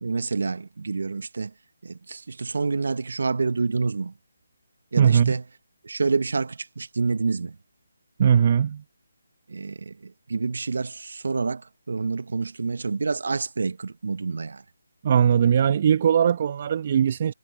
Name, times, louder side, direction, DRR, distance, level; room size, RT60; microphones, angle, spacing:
voice 1, 0.0-1.5 1.8-4.1 4.9-5.4 5.8-7.5 9.5-11.6 11.9-14.6, right 4 dB, 65° right, 1.3 m, -28 dB
voice 2, 5.0-5.3 8.2-8.8 15.0-17.3, right 8 dB, 40° right, 1.5 m, -19 dB
figure-of-eight pair, 150°, 0 cm